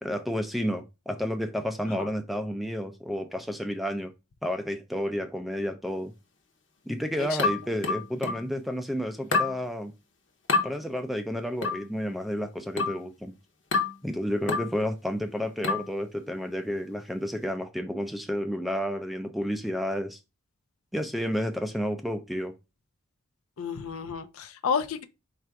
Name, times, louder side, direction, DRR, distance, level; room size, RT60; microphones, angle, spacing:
voice 1, 0.0-4.1 4.4-6.1 6.9-9.9 10.6-13.3 14.0-20.2 20.9-22.5, equal, ahead, 0.4 m, -31 dB
voice 2, 7.2-7.5 23.6-25.1, left 6 dB, 75° left, 0.5 m, -31 dB
sound 1, 7.4-8.5 9.3-9.6 10.5-10.7 11.6-11.9 12.8-13.1 13.7-14.0 14.5-14.8 15.6-15.9, left 4 dB, 55° left, 0.8 m, -27 dB
4.5 x 2.5 x 4.5 m
head